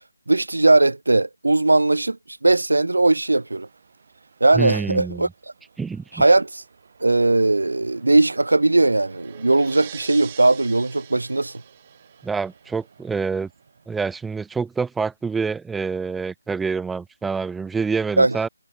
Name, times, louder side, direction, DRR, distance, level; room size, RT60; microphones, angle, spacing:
voice 1, 0.3-3.7 4.4-5.3 6.1-6.6 7.0-11.5 18.2-18.4, right 2 dB, 90° right, 0.4 m, -19 dB
sound 1, 3.2-14.4, right 5 dB, 40° right, 8.0 m, -56 dB
voice 2, 4.5-5.3 5.8-6.2 12.2-13.5 13.9-18.5, right 5 dB, 5° right, 0.4 m, -27 dB
sound 2, 7.9-12.8, right 12 dB, 20° right, 4.3 m, -44 dB
figure-of-eight pair, 170°, 0 cm